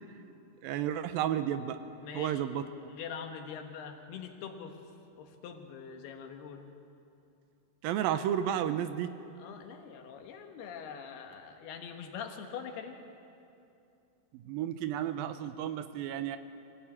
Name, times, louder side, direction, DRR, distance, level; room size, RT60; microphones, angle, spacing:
voice 1, 0.6-1.8 2.1-2.7 7.8-9.1 14.3-16.4, right 10 dB, 80° right, 10 dB, 2.2 m, -32 dB
voice 2, 2.0-2.5 2.9-4.8 5.1-6.7 9.4-13.0, left 7 dB, 75° left, 5 dB, 3.4 m, -43 dB
24.5 x 16.5 x 8.7 m, 2.7 s
omnidirectional pair, 4.7 m